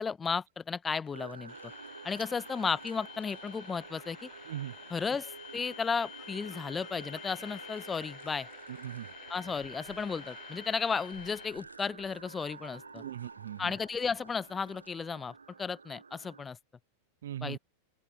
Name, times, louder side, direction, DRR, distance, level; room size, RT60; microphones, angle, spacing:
voice 1, 0.0-1.7 2.0-4.3 4.9-8.5 9.3-13.0 13.6-16.6 17.4-17.6, left 5 dB, 15° left, 0.8 m, -34 dB
sound 1, 1.0-14.9, left 4 dB, 75° left, 4.9 m, -60 dB
sound 2, 1.1-16.5, right 5 dB, 75° right, 3.1 m, -49 dB
sound 3, 1.5-11.5, left 17 dB, 35° left, 3.4 m, -51 dB
voice 2, 8.7-9.1 12.9-13.7 17.2-17.6, right 11 dB, 60° right, 0.4 m, -39 dB
open air
figure-of-eight pair, 90°, 0 cm